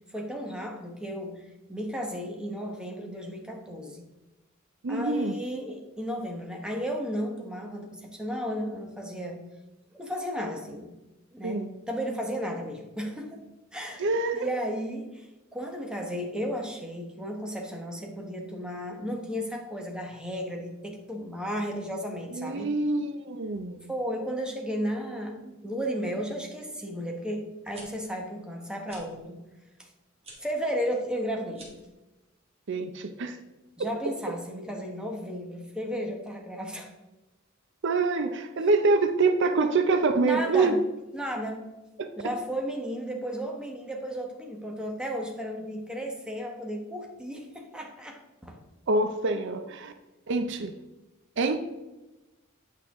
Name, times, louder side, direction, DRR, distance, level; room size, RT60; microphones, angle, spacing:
voice 1, 0.0-4.0 4.9-9.4 9.9-10.9 11.3-13.4 13.7-14.1 14.3-22.7 23.9-29.4 29.8-29.9 30.4-31.7 33.8-36.9 40.2-40.8 41.1-41.6 42.2-48.6, equal, 5° right, 1 dB, 1.1 m, -34 dB
voice 2, 4.8-5.4 11.4-11.7 14.0-14.5 22.3-23.8 32.7-33.4 37.8-40.8 42.0-42.1 48.9-49.9 50.3-50.7 51.4-51.6, right 3 dB, 60° right, 8 dB, 0.6 m, -25 dB
sound 1, 27.7-27.8 28.8-29.0 30.2-30.4 31.5-31.9, right 2 dB, 30° right, 2.1 m, -47 dB
8.8 x 6.5 x 3.6 m, 1.1 s
head